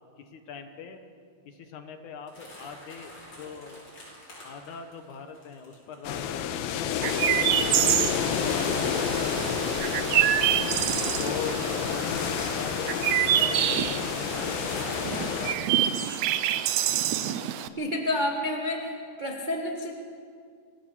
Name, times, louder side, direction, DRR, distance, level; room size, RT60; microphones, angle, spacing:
voice 1, 0.2-1.0 1.5-3.1 3.4-3.8 4.4-10.8 11.1-11.6 11.9-15.9, left 6 dB, 65° left, 7 dB, 2.4 m, -42 dB
sound 1, 2.3-6.3 6.8-6.9 7.2-7.3 7.5-7.8 8.3-13.3 13.8-13.9 14.6-17.0, left 1 dB, 45° left, 7.9 m, -47 dB
sound 2, 6.0-15.6, left 8 dB, 85° left, 2.7 m, -29 dB
Chirp tweet, 7.0-17.7, right 11 dB, 85° right, 1.5 m, -27 dB
voice 2, 17.8-19.9, left 1 dB, 70° right, 0 dB, 0.4 m, -29 dB
25.5 x 16.0 x 7.2 m, 2.2 s
omnidirectional pair, 4.2 m